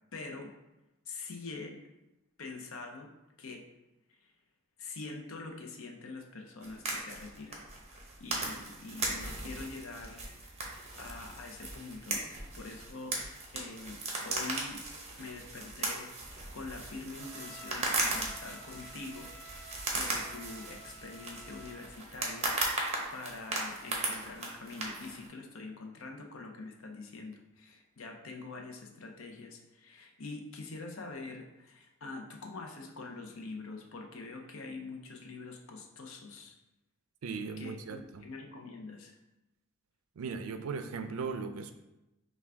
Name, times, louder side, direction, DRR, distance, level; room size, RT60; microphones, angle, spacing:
voice 1, 0.1-0.5 1.1-1.8 2.4-3.1 3.4-3.6 4.2-4.3 4.8-7.7 8.2-10.3 11.0-12.2 12.5-13.2 13.5-14.8 15.2-16.1 16.5-22.8 23.1-36.6 37.6-39.2, left 3 dB, 70° left, 3 dB, 0.6 m, -45 dB
sound 1, 6.6-25.3, right 2 dB, 30° right, 0.8 m, -37 dB
Trumpet, 17.2-21.9, equal, 10° left, 0.6 m, -53 dB
voice 2, 37.2-38.2 40.2-41.7, right 5 dB, 75° right, 8 dB, 0.4 m, -38 dB
5.8 x 2.3 x 3.4 m, 0.96 s
head